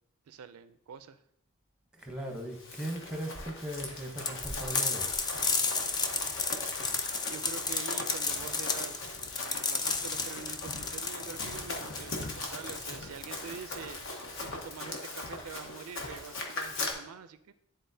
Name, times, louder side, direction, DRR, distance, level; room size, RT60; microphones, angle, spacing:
voice 1, 0.3-1.2 7.2-14.0 14.3-17.5, right 7 dB, 80° right, 12 dB, 0.4 m, -45 dB
voice 2, 2.0-5.2, right 1 dB, 5° right, 2 dB, 0.8 m, -38 dB
Run, 2.4-16.9, left 2 dB, 60° left, 1.0 m, -40 dB
sound 1, 4.2-13.6, left 4 dB, 20° left, 0.3 m, -33 dB
10.0 x 3.9 x 2.7 m, 0.76 s
head